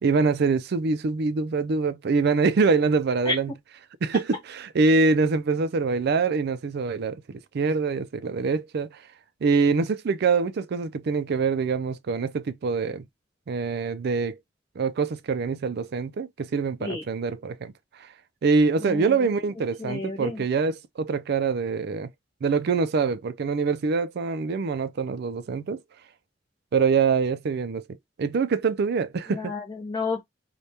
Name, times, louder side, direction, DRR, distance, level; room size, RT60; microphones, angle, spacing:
voice 1, 0.0-3.5 4.0-9.0 9.4-13.1 13.5-14.4 14.8-17.7 18.4-22.1 22.4-25.8 26.7-29.5, right 4 dB, 60° right, 0.4 m, -24 dB
voice 2, 18.8-19.3 19.8-20.4 29.3-30.2, left 3 dB, 25° left, 0.7 m, -31 dB
3.3 x 2.2 x 2.7 m
head